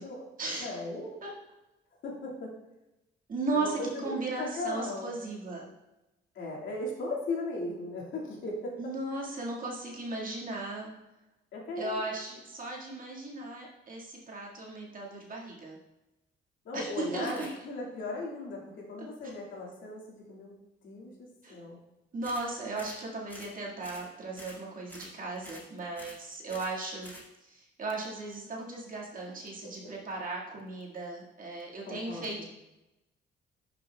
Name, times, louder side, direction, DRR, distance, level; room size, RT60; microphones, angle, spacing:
voice 1, 0.6-1.2 2.0-2.5 3.5-5.1 6.3-8.8 9.1-9.4 11.5-12.0 16.6-20.6 20.8-21.1 21.5-21.8 28.4-28.6 31.9-32.4, left 2 dB, 75° left, -3 dB, 2.2 m, -37 dB
voice 2, 3.3-5.7 8.8-10.9 11.8-15.8 16.7-17.5 21.4-21.5 22.1-27.1 27.4-32.4, right 3 dB, 45° right, -3 dB, 2.0 m, -36 dB
sound 1, 17.2-17.6 22.2-22.5 22.7-23.0 23.3-23.5 23.8-24.1 24.3-24.6 24.9-25.1 25.4-25.7 25.9-26.2 26.5-26.7 27.0-27.3, left 1 dB, 10° left, 2.2 m, -48 dB
11.5 x 6.1 x 2.3 m, 0.98 s
cardioid pair, 90°, 20 cm